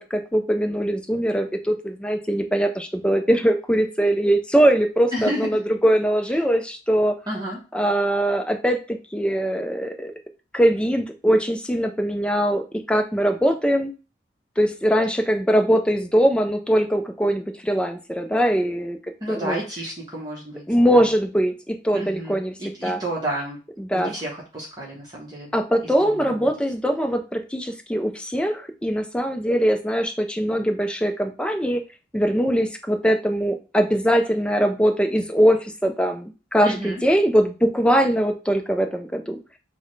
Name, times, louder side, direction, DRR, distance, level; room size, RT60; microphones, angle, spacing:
voice 1, 0.0-7.2 7.7-10.1 10.5-13.9 14.6-19.0 19.3-19.6 20.7-22.5 22.8-23.0 23.8-24.1 25.5-31.8 32.1-39.4, equal, 5° left, 6 dB, 0.4 m, -21 dB
voice 2, 5.1-5.6 7.3-7.6 19.2-20.6 20.9-21.1 21.9-23.6 23.9-25.6 25.8-26.5 36.6-37.0, right 1 dB, 20° right, -4 dB, 0.9 m, -31 dB
6.0 x 2.1 x 3.1 m, 0.32 s
head